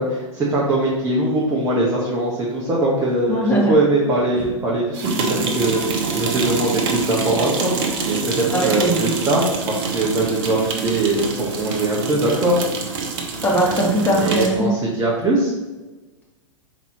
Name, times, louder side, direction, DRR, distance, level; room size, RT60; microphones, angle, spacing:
voice 1, 0.0-12.6 14.2-15.5, right 2 dB, 15° right, -6 dB, 1.2 m, -21 dB
voice 2, 3.3-3.7 4.4-4.5 8.5-9.1 13.4-14.7, right 1 dB, 10° left, -4 dB, 1.8 m, -20 dB
sound 1, 4.9-14.6, right 4 dB, 45° right, 1.1 m, -26 dB
5.9 x 4.1 x 4.3 m, 1.2 s
figure-of-eight pair, 100°, 17 cm